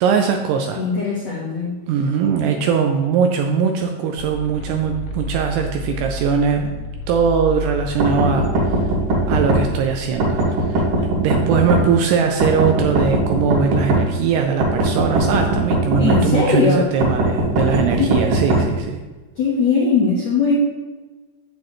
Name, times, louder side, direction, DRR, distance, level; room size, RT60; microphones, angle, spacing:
voice 1, 0.0-0.8 1.9-6.7 7.1-8.8 9.3-19.0, right 6 dB, 80° right, 4 dB, 2.5 m, -20 dB
voice 2, 0.8-1.7 16.0-16.8 17.8-18.1 19.4-20.6, left 4 dB, 75° left, -5 dB, 1.6 m, -19 dB
sound 1, 4.2-10.1, equal, 90° left, 2.2 m, -30 dB
sound 2, 8.0-9.6 10.2-11.8 12.4-14.0 14.6-16.2 17.0-18.6, right 2 dB, 50° right, 3.3 m, -19 dB
8.6 x 8.2 x 3.1 m, 1.3 s
omnidirectional pair, 5.3 m